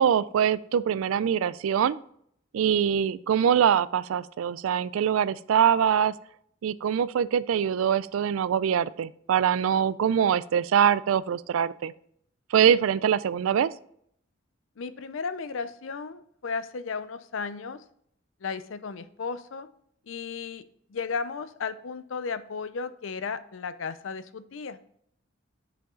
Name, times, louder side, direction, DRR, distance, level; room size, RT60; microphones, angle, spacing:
voice 1, 0.0-2.0 2.5-6.1 6.6-11.9 12.5-13.7, right 8 dB, 80° right, 18 dB, 0.3 m, -23 dB
voice 2, 14.8-17.8 18.4-19.7 20.1-20.6 20.9-24.8, left 5 dB, 70° left, 13 dB, 0.5 m, -34 dB
6.4 x 5.5 x 3.8 m, 0.67 s
head